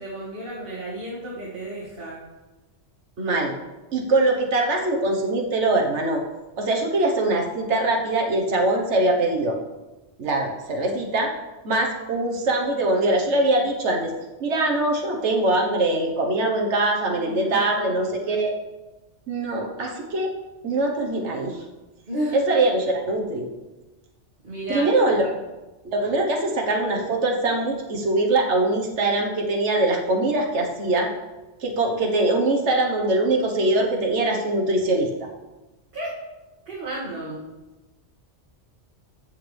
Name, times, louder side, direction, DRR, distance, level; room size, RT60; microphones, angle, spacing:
voice 1, 0.0-2.2 17.0-18.1 22.1-22.4 24.4-24.9 25.2-25.3 35.9-36.1 36.7-37.4, right 1 dB, 45° right, -8 dB, 2.5 m, -33 dB
voice 2, 3.2-3.6 3.9-6.2 6.6-9.6 10.2-11.3 11.6-14.1 14.4-18.5 19.3-20.3 20.6-21.6 22.3-23.5 24.7-25.3 25.8-31.1 31.6-35.3, right 2 dB, 70° right, 1 dB, 1.6 m, -22 dB
14.0 x 8.0 x 3.5 m, 1.1 s
omnidirectional pair, 1.2 m